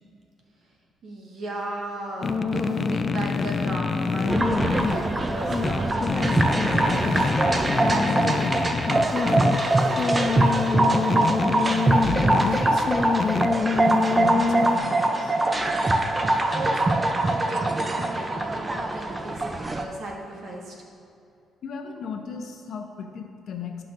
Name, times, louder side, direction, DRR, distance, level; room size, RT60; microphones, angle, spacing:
voice 1, 1.0-7.0 7.4-10.4 16.1-19.4 19.7-20.9, right 2 dB, 60° right, -2 dB, 1.5 m, -36 dB
sound 1, 2.2-14.8, left 4 dB, 40° left, 0.3 m, -26 dB
sound 2, 4.3-19.8, right 2 dB, 20° right, 0.5 m, -23 dB
sound 3, 6.2-13.3, right 2 dB, 80° right, 0.9 m, -43 dB
voice 2, 11.7-12.2 12.5-13.7 14.1-15.4 21.6-23.8, left 5 dB, 65° left, 4 dB, 0.8 m, -36 dB
11.5 x 5.9 x 2.6 m, 2.6 s
cardioid pair, 90°, 0 cm